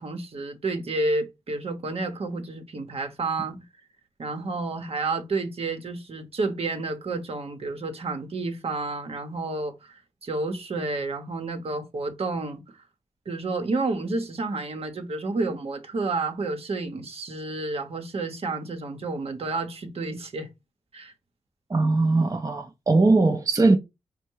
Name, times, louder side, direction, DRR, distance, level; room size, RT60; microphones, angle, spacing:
voice 1, 0.0-3.6 4.2-12.6 13.3-20.5 20.9-21.1, right 3 dB, 60° right, 1.0 m, -30 dB
voice 2, 21.7-23.8, right 3 dB, 30° right, 0.6 m, -20 dB
4.4 x 2.2 x 4.5 m
supercardioid pair, 40°, 11 cm